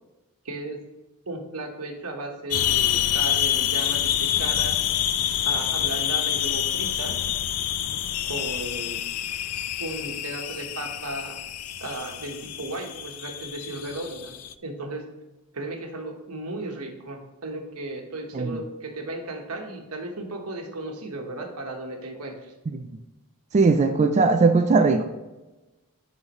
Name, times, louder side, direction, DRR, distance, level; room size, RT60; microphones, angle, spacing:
voice 1, 0.4-0.8 1.3-4.8 5.4-7.2 8.3-9.0 9.8-11.4 11.8-14.3 14.6-15.1 15.5-22.5, right 2 dB, 90° right, 3 dB, 1.2 m, -35 dB
sound 1, 2.5-14.5, left 11 dB, 85° left, 0.4 m, -27 dB
voice 2, 23.5-25.0, right 4 dB, 30° right, 6 dB, 0.4 m, -19 dB
10.5 x 4.0 x 3.0 m, 1.1 s
head